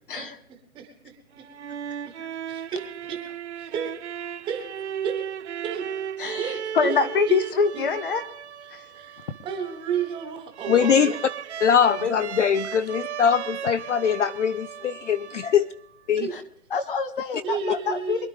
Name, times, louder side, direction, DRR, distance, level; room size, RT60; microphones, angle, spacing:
voice 1, 0.1-1.5 2.0-2.2 2.4-3.2 3.5-3.9 4.4-5.3 5.6-5.9 6.4-7.0 7.3-7.4 7.7-7.9 8.6-11.2 16.2-16.3 17.4-18.3, right 7 dB, 10° right, 3 dB, 1.4 m, -33 dB
sound 1, 1.3-16.0, right 9 dB, 50° right, 0.5 m, -36 dB
voice 2, 6.2-8.2 8.7-8.8 11.9-12.1 16.7-18.2, left 5 dB, 35° left, 10 dB, 0.9 m, -25 dB
voice 3, 10.7-11.1 11.6-15.7 16.1-16.3, left 7 dB, 55° left, 16 dB, 0.5 m, -22 dB
24.0 x 10.5 x 3.5 m, 0.67 s
hypercardioid pair, 155°, 45 cm